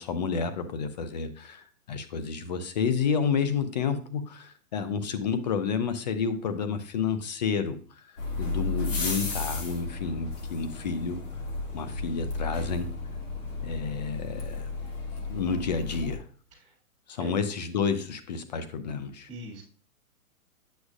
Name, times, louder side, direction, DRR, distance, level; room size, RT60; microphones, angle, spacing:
voice 1, 0.0-7.8 8.4-11.2 11.7-12.9 13.6-14.7 15.3-16.2 17.1-19.3, left 6 dB, 30° left, 10 dB, 0.5 m, -30 dB
sound 1, 8.2-16.2, left 3 dB, 55° left, 2.0 m, -33 dB
voice 2, 19.3-19.6, right 1 dB, 15° right, -2 dB, 3.0 m, -41 dB
8.2 x 6.0 x 2.4 m, 0.42 s
hypercardioid pair, 145°, 45 cm